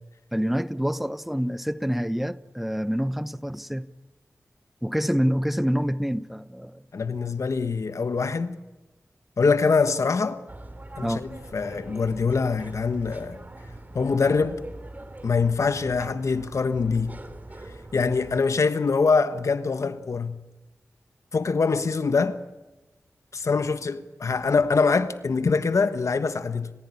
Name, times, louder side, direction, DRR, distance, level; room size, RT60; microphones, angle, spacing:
voice 1, 0.3-3.9 4.8-6.8 11.0-11.2, equal, 5° right, 1.0 m, -27 dB
voice 2, 6.9-8.6 9.4-10.4 11.0-13.4 13.9-14.6 15.2-17.2 17.9-20.4 21.3-22.4 23.3-26.7, left 4 dB, 70° left, 1.3 m, -24 dB
sound 1, 10.5-18.5, right 2 dB, 30° right, 3.2 m, -42 dB
29.5 x 15.5 x 9.8 m
cardioid pair, 55°, 5 cm